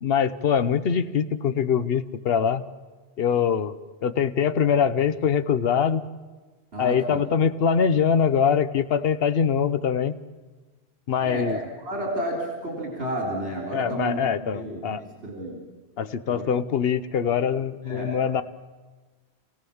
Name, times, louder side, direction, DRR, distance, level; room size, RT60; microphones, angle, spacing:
voice 1, 0.0-2.6 3.2-6.0 6.8-10.1 11.1-11.6 13.7-15.0 16.0-18.4, left 7 dB, 65° left, 11 dB, 1.0 m, -23 dB
voice 2, 6.7-7.2 11.2-15.0 15.2-15.6 16.3-16.4 17.8-18.2, right 1 dB, 70° right, -1 dB, 3.9 m, -31 dB
28.0 x 16.5 x 7.2 m, 1.3 s
omnidirectional pair, 1.1 m